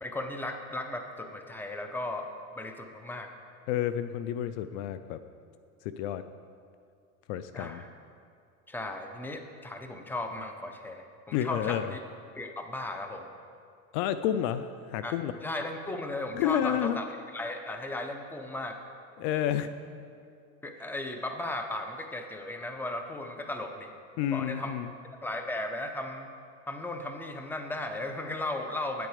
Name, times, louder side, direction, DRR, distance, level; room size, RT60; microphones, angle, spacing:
voice 1, 0.0-2.3 2.6-3.3 7.5-7.9 8.7-12.0 12.3-13.3 15.0-15.2 15.4-18.8 20.6-23.9 24.2-24.8 25.2-26.3 26.7-29.1, left 2 dB, 5° left, 5 dB, 0.8 m, -36 dB
voice 2, 3.7-5.2 5.8-6.2 7.3-7.8 11.3-11.9 13.9-15.3 16.3-17.0 19.2-19.7 24.2-24.9, left 10 dB, 60° left, 12 dB, 0.5 m, -30 dB
9.3 x 7.7 x 5.0 m, 2.3 s
supercardioid pair, 100°, 41 cm